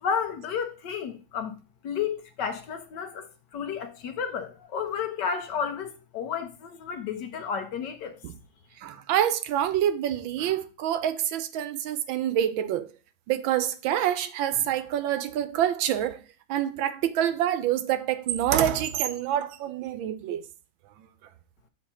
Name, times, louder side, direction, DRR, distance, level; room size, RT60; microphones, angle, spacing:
voice 1, 0.0-1.5 1.8-8.2, left 7 dB, 65° left, 1.2 m, -32 dB
voice 2, 8.8-12.9 13.3-16.2 16.5-20.4, right 11 dB, 75° right, 1.4 m, -26 dB
6.4 x 4.4 x 5.5 m
omnidirectional pair, 2.3 m